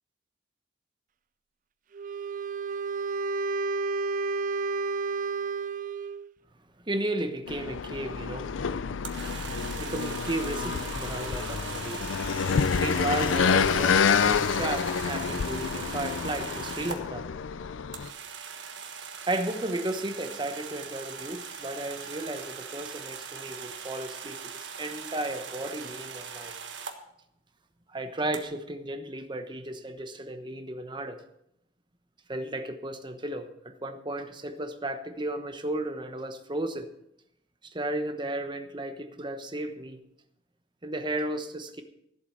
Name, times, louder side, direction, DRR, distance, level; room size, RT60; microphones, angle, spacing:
Wind instrument woodwind instrument, 1.9-6.3, right 4 dB, 40° right, 0.4 m, -31 dB
voice 1, 6.9-8.7 9.8-17.3 19.2-26.5 27.9-31.2 32.3-36.9 37.6-40.0 40.8-41.8, right 1 dB, 25° right, 7 dB, 1.0 m, -34 dB
sound 1, 7.5-18.1, left 6 dB, 80° left, 0.5 m, -28 dB
sound 2, 9.0-17.0 17.9-27.0 28.3-28.4, right 6 dB, 70° right, 1.5 m, -40 dB
14.0 x 7.8 x 6.4 m, 0.77 s
head